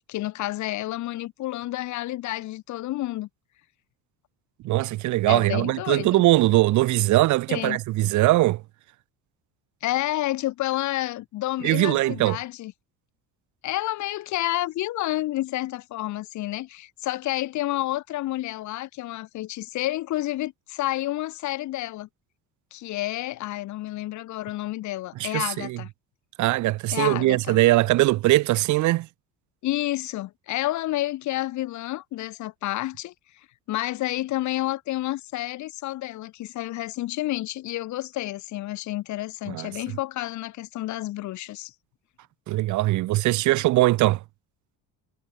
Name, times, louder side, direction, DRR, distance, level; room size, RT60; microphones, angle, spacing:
voice 1, 0.1-3.3 5.3-6.2 7.5-7.8 9.8-12.7 13.6-22.1 22.7-25.9 26.9-27.6 29.6-33.1 33.7-41.7, left 16 dB, 55° left, 1.7 m, -30 dB
voice 2, 4.6-8.6 11.6-12.4 25.2-25.8 26.4-29.1 39.5-39.7 42.5-44.2, right 17 dB, 55° right, 0.9 m, -21 dB
cardioid pair, 180°, 34 cm